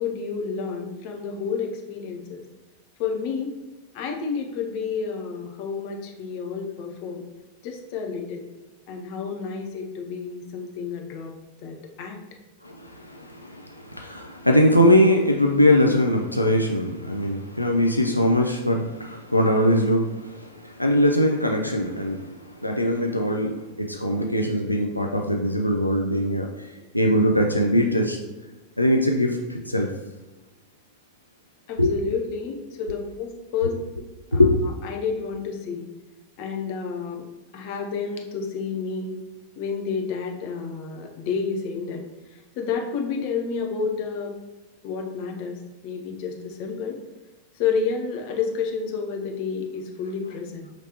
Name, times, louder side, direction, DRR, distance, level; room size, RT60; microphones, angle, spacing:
voice 1, 0.0-2.4 3.0-3.5 3.9-7.2 7.6-8.5 8.9-11.3 11.6-12.2 31.7-34.5 34.8-35.9 36.4-37.2 37.5-39.1 39.6-44.3 44.8-47.0 47.5-50.7, left 5 dB, 45° left, 1 dB, 0.7 m, -30 dB
voice 2, 12.6-28.2 28.8-29.9 31.8-31.9 34.3-34.6, equal, 90° left, 1 dB, 0.3 m, -21 dB
5.0 x 3.2 x 2.9 m, 1.2 s
figure-of-eight pair, 90°, 0 cm